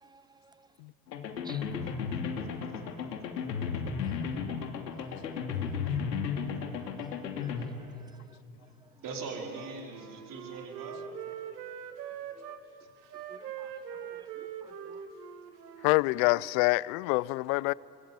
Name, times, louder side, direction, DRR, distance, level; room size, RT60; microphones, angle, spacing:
voice 1, 0.0-0.7 1.4-1.7 4.0-4.1 5.0-5.1 7.4-7.5 7.8-8.4 12.4-12.5 13.3-15.0, right 4 dB, 10° right, 0.7 m, -56 dB
sound 1, 1.1-7.7, left 6 dB, 85° left, 2.8 m, -34 dB
voice 2, 9.0-11.0, right 4 dB, 40° right, 5.0 m, -41 dB
Wind instrument woodwind instrument, 9.5-12.6 13.0-16.5, right 8 dB, 80° right, 1.9 m, -43 dB
voice 3, 15.8-17.7, left 23 dB, 60° left, 0.7 m, -26 dB
25.0 x 24.0 x 8.5 m
hypercardioid pair, 85°, 49 cm